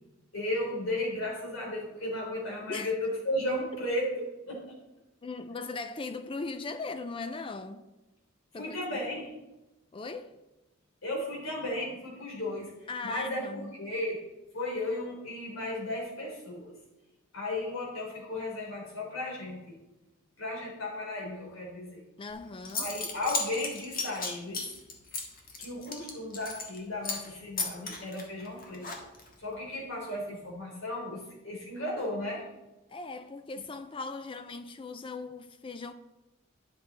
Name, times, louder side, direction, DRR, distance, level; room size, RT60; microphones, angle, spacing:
voice 1, 0.3-4.7 8.5-9.3 11.0-14.2 14.5-16.7 17.3-19.8 20.4-22.0 22.8-24.7 25.6-28.9 29.4-32.5, left 1 dB, 75° left, 3.6 m, -35 dB
voice 2, 5.2-7.9 8.5-9.0 9.9-10.4 12.9-13.7 22.2-22.9 32.9-35.9, left 3 dB, 25° left, 0.4 m, -39 dB
Zipper (clothing) / Coin (dropping), 22.3-22.4 22.6-26.8 27.0-27.3 27.6-29.3, left 4 dB, 45° left, 1.6 m, -35 dB
10.5 x 6.4 x 4.0 m
head